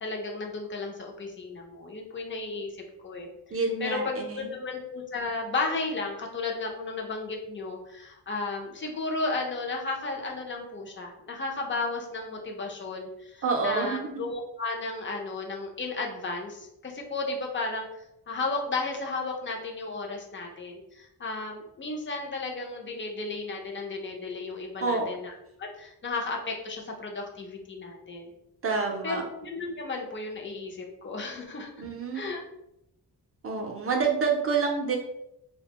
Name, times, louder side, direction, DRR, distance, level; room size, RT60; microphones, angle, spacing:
voice 1, 0.0-25.3 25.6-28.3 29.0-31.9 32.1-32.4, left 3 dB, 30° left, 1 dB, 0.4 m, -34 dB
voice 2, 3.5-4.5 13.4-14.2 24.8-25.1 28.6-29.2 31.8-32.2 33.4-35.0, right 4 dB, 35° right, 1 dB, 0.5 m, -28 dB
2.3 x 2.1 x 2.8 m, 0.84 s
wide cardioid pair, 125°, 39 cm